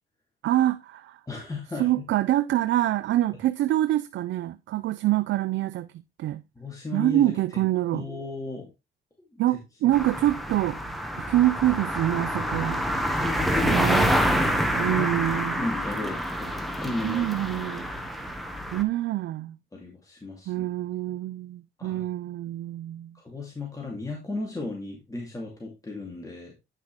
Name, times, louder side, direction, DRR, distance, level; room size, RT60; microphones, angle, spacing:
voice 1, 0.4-1.2 1.8-5.9 6.2-6.4 6.9-8.0 9.4-10.8 11.3-12.8 13.6-14.1 14.8-15.6 17.0-17.9 18.7-19.6 20.5-23.1, right 14 dB, 70° right, 0.5 m, -25 dB
voice 2, 1.3-1.9 6.6-7.4 7.9-8.7 9.3-9.4 9.8-9.9 13.2-15.1 15.6-17.4 17.7-17.9 19.7-20.7 21.8-22.1 23.1-26.5, left 2 dB, 15° left, 2.5 m, -35 dB
sound 1, 9.9-18.8, equal, ahead, 1.3 m, -27 dB
9.6 x 5.5 x 3.2 m
cardioid pair, 90°, 20 cm